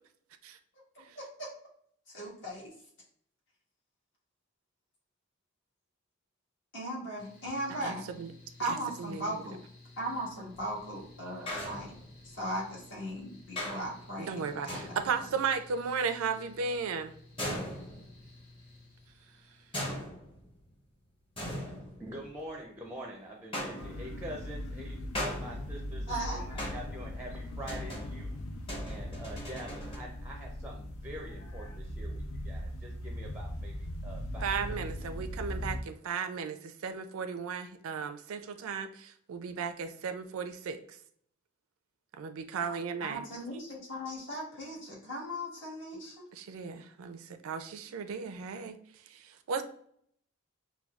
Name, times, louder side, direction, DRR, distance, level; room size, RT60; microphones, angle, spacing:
voice 1, 1.1-1.5 2.1-2.7 6.7-8.1 8.6-9.6 10.0-11.9 12.2-15.0 26.1-26.4 43.0-46.2, right 1 dB, 60° left, -4 dB, 1.5 m, -38 dB
Mechanical fan, 7.2-19.7, left 2 dB, 40° left, 1.5 m, -55 dB
voice 2, 7.8-8.3 8.7-9.4 14.2-17.2 34.4-40.8 42.2-43.2 46.3-48.8 49.1-49.6, right 5 dB, 80° right, 8 dB, 0.4 m, -35 dB
sound 1, 10.5-10.9 11.5-12.4 13.6-14.1 14.7-15.4 17.4-18.4 19.7-20.7 21.4-22.6 23.5-24.3 25.1-26.0 26.6-27.1 27.7-30.0, equal, 25° left, 0.9 m, -39 dB
voice 3, 22.0-28.3 28.8-34.8, right 1 dB, 10° right, 0 dB, 0.5 m, -45 dB
sound 2, 23.8-35.8, equal, 85° left, 0.5 m, -39 dB
5.7 x 2.3 x 2.3 m, 0.65 s
head